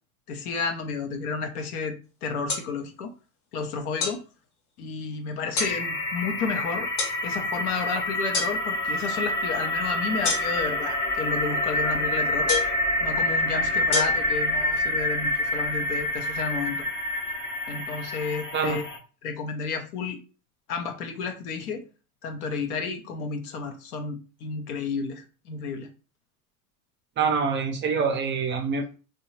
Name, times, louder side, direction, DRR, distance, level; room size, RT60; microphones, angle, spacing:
voice 1, 0.3-3.1 3.5-4.2 4.8-6.9 7.2-12.5 13.0-16.8 17.7-18.8 19.2-20.2 20.7-21.8 22.2-25.9, left 5 dB, 85° left, 6 dB, 0.8 m, -31 dB
sound 1, 2.5-2.7 4.0-4.2 5.6-5.7 7.0-7.2 8.3-8.5 10.2-10.7 12.5-12.8 13.9-14.0, left 4 dB, 50° left, 1.0 m, -27 dB
sound 2, 5.6-19.0, left 1 dB, 25° left, 0.6 m, -27 dB
voice 2, 27.2-29.0, right 5 dB, 30° right, 5 dB, 0.4 m, -25 dB
2.7 x 2.2 x 3.0 m, 0.35 s
supercardioid pair, 100°, 44 cm